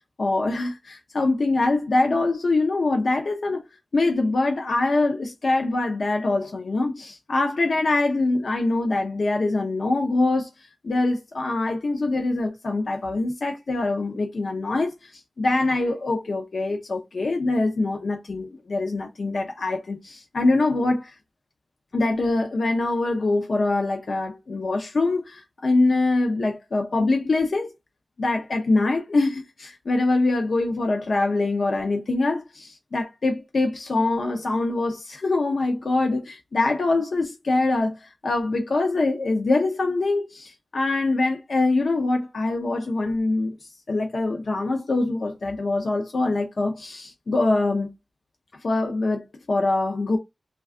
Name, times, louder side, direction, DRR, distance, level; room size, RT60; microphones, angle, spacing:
voice 1, 0.2-3.6 3.9-10.5 10.8-21.2 21.9-27.7 28.2-43.6 43.9-47.9 48.6-50.2, left 2 dB, 75° left, 0.5 m, -24 dB
2.3 x 2.3 x 3.5 m
cardioid pair, 50°, 0 cm